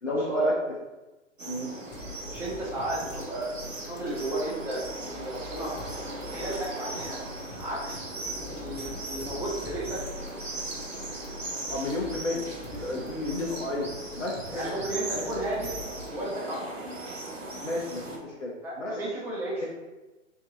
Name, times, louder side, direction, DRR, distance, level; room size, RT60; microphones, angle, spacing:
voice 1, 0.0-0.5 1.5-1.7 6.3-6.5 11.7-12.5 12.7-13.9 14.2-14.7 15.1-15.2 17.6-19.0 19.6-19.7, left 2 dB, 80° left, -3 dB, 1.0 m, -32 dB
sound 1, 1.4-18.2, right 2 dB, 90° right, 1.1 m, -38 dB
sound 2, 1.9-16.1, left 3 dB, 40° left, 0.9 m, -45 dB
voice 2, 2.2-4.8 5.1-5.7 6.3-7.2 7.6-8.1 8.5-10.0 14.5-15.7 16.1-16.8 18.6-19.6, right 2 dB, 5° right, -6 dB, 0.4 m, -33 dB
4.7 x 2.8 x 3.7 m, 1.1 s
figure-of-eight pair, 110°, 37 cm